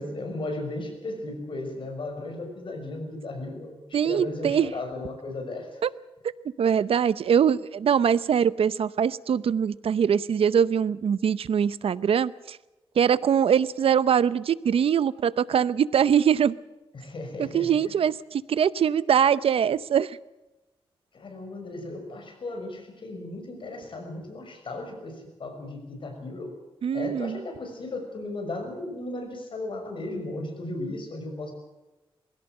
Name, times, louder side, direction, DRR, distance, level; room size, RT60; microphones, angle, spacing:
voice 1, 0.0-5.8 16.9-18.0 21.1-26.5 26.9-31.5, left 2 dB, 60° left, 4 dB, 6.0 m, -36 dB
voice 2, 3.9-4.7 5.8-5.9 6.6-12.6 13.0-16.6 17.4-20.2 26.8-27.4, right 8 dB, 80° right, 17 dB, 0.7 m, -23 dB
21.0 x 17.0 x 7.9 m, 1.0 s
wide cardioid pair, 110°, 10 cm